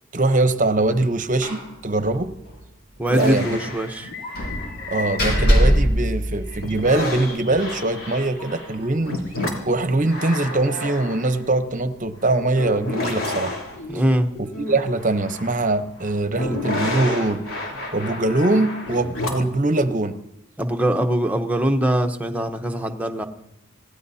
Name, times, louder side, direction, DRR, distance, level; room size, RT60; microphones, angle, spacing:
voice 1, 0.1-2.4 3.1-3.6 4.9-9.2 9.7-13.6 14.4-17.5 17.9-20.2, right 2 dB, 40° right, 10 dB, 0.8 m, -22 dB
Slam, 1.4-1.7 2.0-2.1 2.4-2.6 4.3-6.9, equal, 55° left, 5.9 m, -21 dB
voice 2, 3.0-4.1 13.9-14.3 20.6-23.3, right 1 dB, 10° right, 5 dB, 0.9 m, -22 dB
sound 1, 3.1-6.0 6.5-19.6, left 1 dB, 85° left, 3.5 m, -31 dB
26.5 x 17.5 x 2.8 m, 0.83 s
head